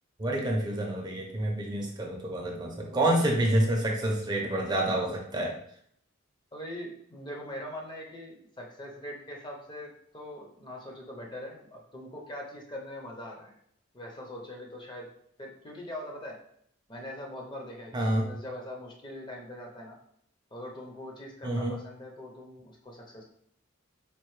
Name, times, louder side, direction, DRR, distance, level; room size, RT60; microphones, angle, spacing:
voice 1, 0.2-5.5 17.9-18.3 21.4-21.8, right 1 dB, 20° right, 0 dB, 0.5 m, -28 dB
voice 2, 6.5-13.5 13.9-15.1 15.4-16.4 16.9-20.0 20.5-23.2, left 1 dB, 25° left, 0 dB, 0.6 m, -42 dB
4.6 x 2.5 x 3.1 m, 0.68 s
head